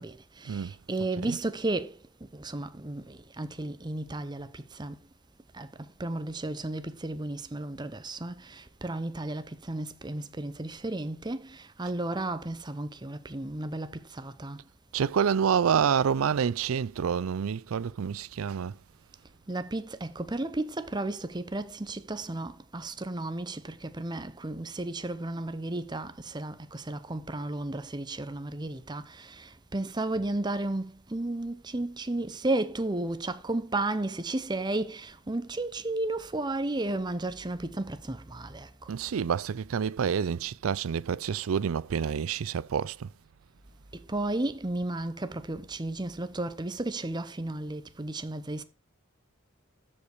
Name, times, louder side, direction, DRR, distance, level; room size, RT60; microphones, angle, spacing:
voice 1, 0.0-5.0 5.5-14.6 19.5-38.7 43.9-48.6, right 2 dB, 20° right, 0.7 m, -33 dB
voice 2, 14.9-18.7 38.9-43.1, right 7 dB, 85° right, 0.4 m, -28 dB
13.0 x 5.3 x 4.7 m
head